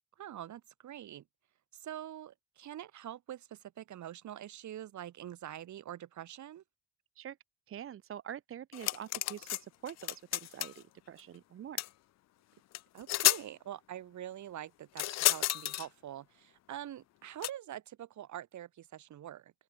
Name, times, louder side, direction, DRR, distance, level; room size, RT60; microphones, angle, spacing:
voice 1, 0.2-1.2 1.7-6.6 12.9-19.5, right 11 dB, 70° right, 3.9 m, -45 dB
voice 2, 7.7-11.8, right 10 dB, 45° right, 0.6 m, -45 dB
sound 1, 8.7-9.6 9.9-10.8 11.8-11.9 12.7-12.8 13.1-13.4 15.0-15.9 17.4-17.5, left 15 dB, 60° left, 0.5 m, -30 dB
open air
cardioid pair, 90°, 30 cm